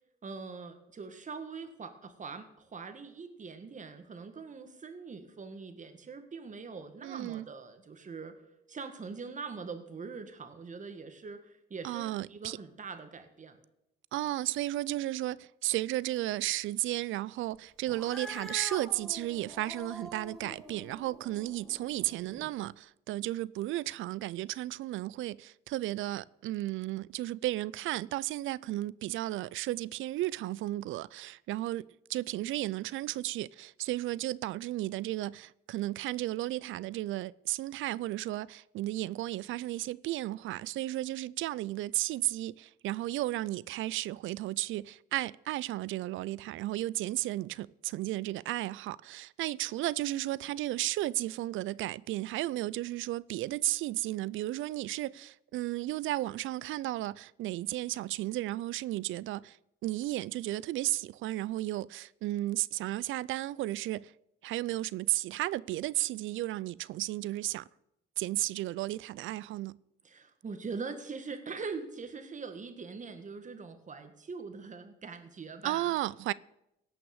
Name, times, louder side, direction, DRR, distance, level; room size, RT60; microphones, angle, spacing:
voice 1, 0.2-8.4 8.7-13.6 70.0-75.9, right 4 dB, 40° right, 1.7 m, -42 dB
voice 2, 7.0-7.5 11.8-12.6 14.1-59.6 59.8-64.1 64.4-67.6 68.2-69.8 75.6-76.3, right 16 dB, 80° right, 0.4 m, -34 dB
Cat, 17.9-22.5, equal, ahead, 1.8 m, -46 dB
17.0 x 6.0 x 7.2 m
cardioid pair, 90°, 20 cm